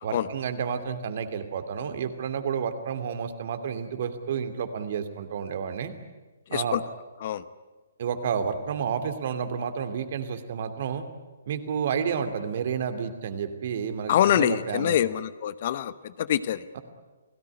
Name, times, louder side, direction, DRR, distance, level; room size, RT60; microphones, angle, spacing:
voice 1, 0.0-5.9 6.5-6.8 8.0-11.0 11.5-15.0 16.7-16.8, right 7 dB, 50° right, 9 dB, 2.6 m, -30 dB
voice 2, 14.1-16.6, left 10 dB, 45° left, 16 dB, 0.9 m, -25 dB
29.0 x 18.0 x 10.0 m, 1.2 s
figure-of-eight pair, 130°, 0 cm